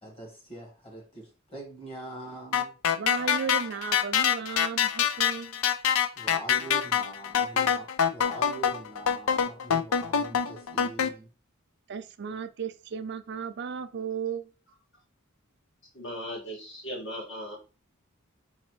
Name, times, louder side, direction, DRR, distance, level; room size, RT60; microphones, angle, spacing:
voice 1, 0.0-2.7 6.2-11.3, right 2 dB, 25° left, 1.7 m, -43 dB
sound 1, 2.5-11.1, left 8 dB, 75° left, 0.5 m, -25 dB
voice 2, 2.9-5.6 11.9-14.5, right 6 dB, 55° right, 0.4 m, -35 dB
voice 3, 15.9-17.5, equal, 60° left, 2.2 m, -37 dB
4.2 x 4.0 x 3.1 m
head